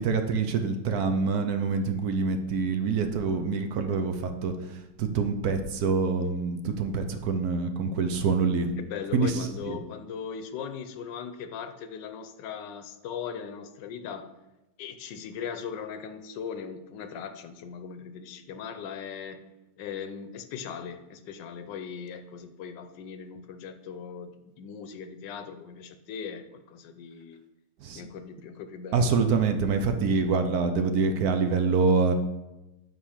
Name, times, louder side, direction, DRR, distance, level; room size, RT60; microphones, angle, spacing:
voice 1, 0.0-8.7 9.1-9.8 27.8-28.0 28.9-32.1, right 4 dB, 65° right, 6 dB, 1.1 m, -26 dB
voice 2, 8.8-14.3 14.8-19.4 19.8-24.3 24.6-27.4 27.9-29.2, left 7 dB, 90° left, 10 dB, 1.4 m, -39 dB
9.3 x 3.6 x 6.4 m, 0.98 s
omnidirectional pair, 1.9 m